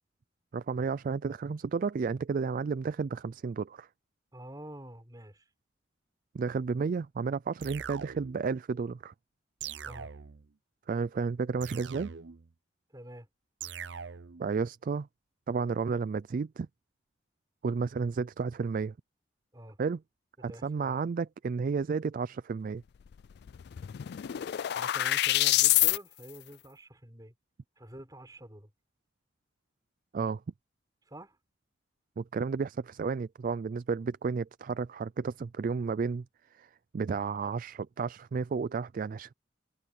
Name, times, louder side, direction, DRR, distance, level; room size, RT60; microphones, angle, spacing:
voice 1, 0.5-3.9 6.3-9.1 10.9-12.1 14.4-15.1 15.5-16.7 17.6-18.9 19.8-20.0 20.4-22.8 30.1-30.4 32.2-36.2 36.6-39.3, right 5 dB, 45° right, 0.3 m, -32 dB
voice 2, 4.3-5.5 9.8-10.1 12.9-13.3 19.5-19.8 20.4-21.0 24.7-27.3 27.8-28.7 31.1-31.4, right 1 dB, 20° right, 4.7 m, -47 dB
sound 1, 7.6-8.5 9.6-10.5 11.6-12.5 13.6-14.5, right 7 dB, 70° right, 0.7 m, -42 dB
sound 2, 23.1-23.2 23.5-26.0, left 15 dB, 60° left, 0.3 m, -26 dB
head